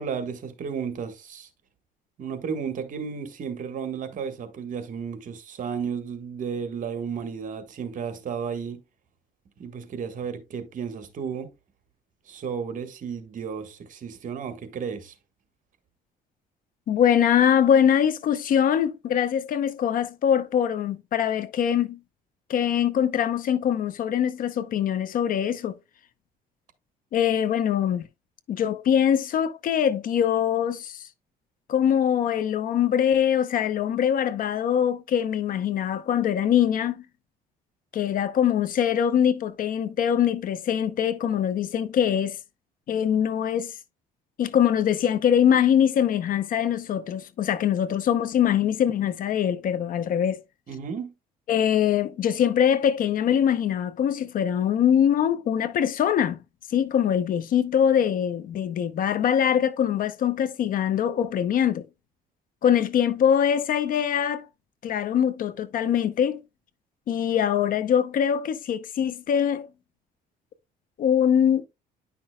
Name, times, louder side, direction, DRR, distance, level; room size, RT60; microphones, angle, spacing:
voice 1, 0.0-1.5 2.2-8.8 9.6-11.5 12.3-15.1 50.7-51.1, right 6 dB, 50° right, 1.5 m, -33 dB
voice 2, 16.9-22.0 22.5-25.7 27.1-28.1 28.5-31.0 31.7-37.0 37.9-42.4 42.9-43.7 44.4-50.4 51.5-56.4 56.7-61.8 62.6-64.5 64.8-66.4 67.1-69.7 71.0-71.7, left 9 dB, 55° left, 0.7 m, -23 dB
9.9 x 5.8 x 2.2 m
cardioid pair, 110°, 17 cm